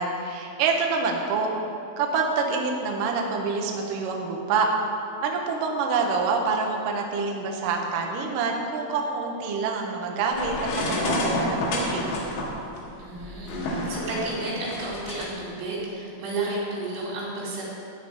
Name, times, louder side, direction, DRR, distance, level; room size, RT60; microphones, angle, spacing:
voice 1, 0.0-1.5 2.0-4.7 5.2-12.1, right 4 dB, 70° right, 1 dB, 2.0 m, -26 dB
sound 1, 10.3-15.3, left 1 dB, 85° left, 4.0 m, -29 dB
voice 2, 13.0-17.7, right 2 dB, 90° right, -6 dB, 5.5 m, -32 dB
13.0 x 4.7 x 8.5 m, 2.6 s
omnidirectional pair, 5.3 m